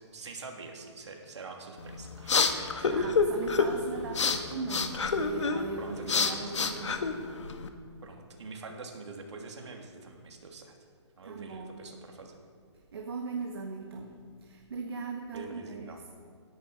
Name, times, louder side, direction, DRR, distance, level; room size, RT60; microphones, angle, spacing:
voice 1, 0.0-3.1 5.8-6.5 8.0-10.8 11.2-12.4 15.3-16.0, right 4 dB, 70° right, 1 dB, 3.0 m, -45 dB
sound 1, 1.8-7.7, left 4 dB, 75° left, 1.5 m, -29 dB
voice 2, 2.4-7.2 11.2-11.8 12.9-16.1, right 4 dB, 55° right, 1 dB, 1.6 m, -39 dB
17.5 x 10.5 x 5.2 m, 2.3 s
hypercardioid pair, 175°, 15 cm